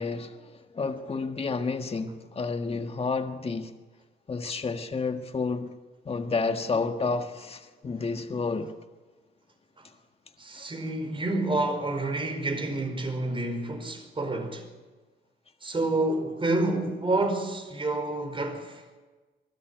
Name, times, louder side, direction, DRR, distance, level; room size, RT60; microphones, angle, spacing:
voice 1, 0.0-3.7 4.3-5.7 6.0-8.7 10.6-10.7, left 4 dB, 30° left, 1.7 m, -30 dB
voice 2, 10.4-14.6 15.6-18.8, right 2 dB, 25° right, 4.9 m, -29 dB
23.0 x 13.0 x 9.1 m
cardioid pair, 90°, 20 cm